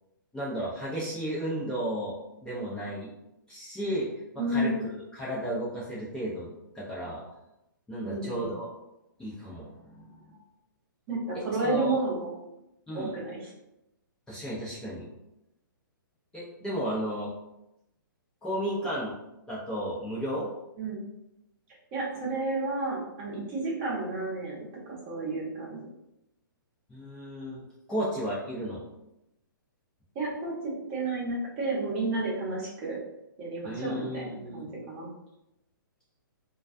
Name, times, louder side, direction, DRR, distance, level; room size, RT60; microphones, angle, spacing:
voice 1, 0.3-3.1 3.5-4.1 4.3-4.7 5.1-6.5 6.7-7.2 7.9-8.7 9.2-10.4 11.3-12.0 12.9-13.1 14.3-15.1 16.3-17.3 18.4-19.2 19.5-20.5 26.9-27.6 27.9-28.8 33.6-34.6, equal, 5° left, -9 dB, 0.5 m, -33 dB
voice 2, 4.4-4.9 8.0-8.5 11.1-12.3 12.9-13.5 20.8-21.0 21.9-25.8 30.1-33.0 33.4-35.1, right 2 dB, 35° right, -4 dB, 0.8 m, -31 dB
2.3 x 2.2 x 2.5 m, 0.86 s
hypercardioid pair, 135°, 12 cm